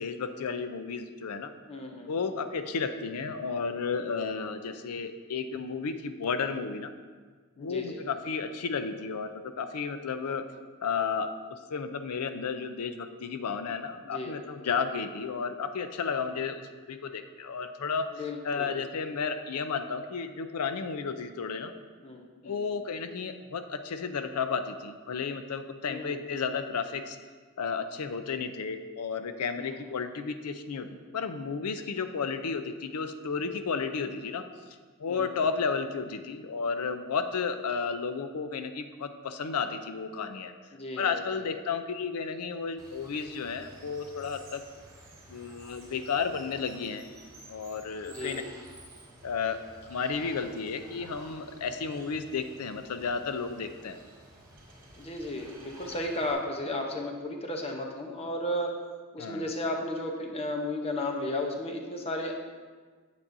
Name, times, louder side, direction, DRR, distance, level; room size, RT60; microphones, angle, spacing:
voice 1, 0.0-1.5 2.1-6.9 7.6-10.5 10.8-21.7 22.5-27.2 27.6-30.9 31.1-34.5 35.0-40.5 41.0-44.6 45.3-47.0 47.5-48.4 49.2-49.6 49.9-54.0 59.2-59.5, left 5 dB, 90° left, 9 dB, 0.5 m, -33 dB
voice 2, 1.7-2.4 7.6-8.0 14.0-14.8 18.1-18.8 22.0-22.7 25.8-26.2 29.6-29.9 33.8-33.9 35.1-35.3 40.7-41.4 48.1-48.5 55.0-58.7 59.1-62.3, left 1 dB, 25° left, 2 dB, 0.7 m, -34 dB
Water, 42.8-56.3, right 1 dB, 20° right, 1.9 m, -51 dB
8.6 x 8.5 x 2.6 m, 1.5 s
head